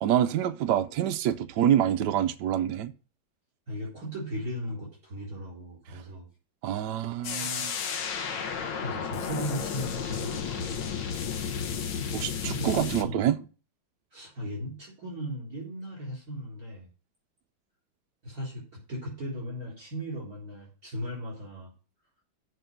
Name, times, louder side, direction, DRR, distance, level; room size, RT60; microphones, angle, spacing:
voice 1, 0.0-2.9 6.6-7.7 11.5-11.7 12.1-13.4, right 10 dB, 70° right, 1.1 m, -26 dB
voice 2, 3.7-6.3 8.8-10.8 11.3-11.5 12.0-12.1 12.4-13.3 14.1-16.9 18.2-21.7, equal, 45° right, 4.4 m, -37 dB
sound 1, 7.2-13.0, left 7 dB, 85° left, 1.8 m, -33 dB
7.9 x 5.3 x 7.6 m
omnidirectional pair, 2.1 m